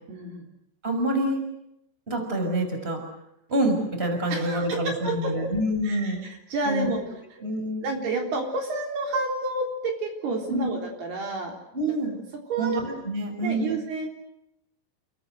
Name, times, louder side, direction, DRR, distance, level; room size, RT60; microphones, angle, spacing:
voice 1, 0.1-0.4 4.3-5.3 5.8-6.2 6.5-7.0 7.3-7.4 7.8-11.5 11.8-11.9 12.5-12.8 13.4-14.1, right 3 dB, 65° right, 2 dB, 5.6 m, -29 dB
voice 2, 0.8-1.4 2.1-3.0 3.5-6.2 6.7-6.9 7.4-7.9 10.5-10.7 11.7-12.1 12.6-13.7, right 1 dB, 15° right, 4 dB, 6.0 m, -26 dB
29.5 x 23.0 x 8.0 m, 0.81 s
omnidirectional pair, 5.0 m